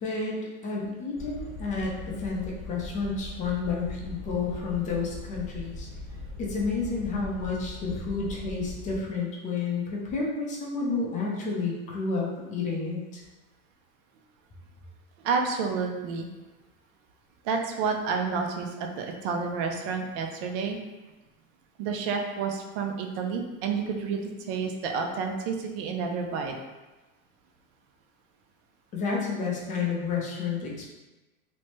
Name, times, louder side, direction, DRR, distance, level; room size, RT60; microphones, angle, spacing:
voice 1, 0.0-5.9 6.4-13.2 28.9-30.8, left 4 dB, 20° left, -2 dB, 0.4 m, -30 dB
sound 1, 1.2-9.0, left 2 dB, ahead, 0.8 m, -40 dB
voice 2, 15.2-16.3 17.4-20.8 21.8-26.5, right 5 dB, 45° right, 3 dB, 0.4 m, -30 dB
3.0 x 2.1 x 3.0 m, 1.1 s
hypercardioid pair, 120°, 43 cm